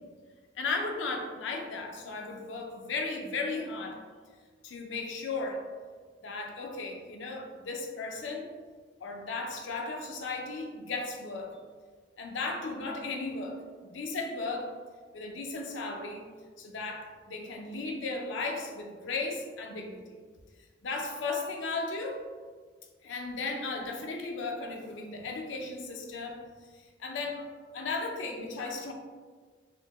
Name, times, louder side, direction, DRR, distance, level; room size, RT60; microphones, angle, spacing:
voice 1, 0.6-4.0 4.6-5.6 6.2-8.5 9.0-11.6 12.2-14.7 15.1-16.3 16.6-20.0 20.8-22.3 23.0-26.4 26.7-28.9, left 3 dB, 80° left, 2 dB, 0.5 m, -35 dB
3.9 x 2.1 x 3.3 m, 1.5 s
head